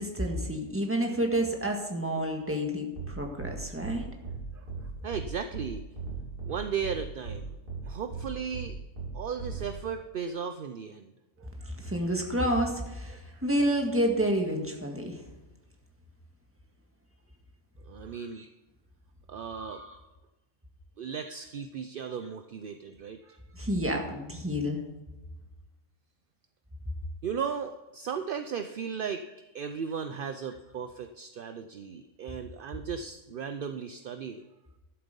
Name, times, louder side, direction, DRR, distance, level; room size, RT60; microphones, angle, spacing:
voice 1, 0.0-4.1 11.8-15.2 18.4-18.5 19.5-20.0 23.5-24.8, equal, 10° right, 2 dB, 1.7 m, -29 dB
sound 1, 2.9-3.1 3.4-3.5 3.8-3.9 4.2-4.4 4.7-4.8 5.1-5.2 5.5-5.7 5.9-6.5 6.8-6.9 7.2-7.4 7.7-7.8 8.1-8.2 8.5-8.7 8.9-9.1 9.4-9.6, right 5 dB, 40° right, 3.4 m, -37 dB
voice 2, 5.0-5.9 6.5-7.5 7.9-8.8 9.1-11.1 11.4-11.7 13.3-13.4 17.9-18.5 19.3-19.8 21.0-23.4 27.2-34.4, right 6 dB, 55° right, 9 dB, 0.6 m, -36 dB
12.0 x 7.7 x 5.3 m, 1.1 s
omnidirectional pair, 1.4 m